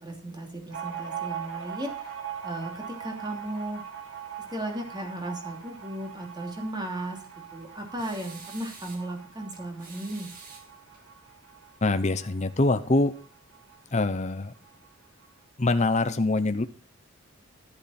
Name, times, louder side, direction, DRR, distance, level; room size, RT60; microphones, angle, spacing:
voice 1, 0.0-2.1 2.4-3.8 4.5-7.2 7.5-10.3, right 1 dB, 20° right, 2 dB, 3.0 m, -35 dB
sound 1, 0.7-13.8 14.1-14.2 14.5-15.3, right 9 dB, 70° right, 3.5 m, -41 dB
sound 2, 8.0-9.1 9.8-11.1, right 4 dB, 40° right, 2.8 m, -47 dB
voice 2, 11.8-13.1 13.9-14.5 15.6-16.7, left 2 dB, 35° left, 9 dB, 0.8 m, -24 dB
12.0 x 10.5 x 4.3 m, 0.36 s
head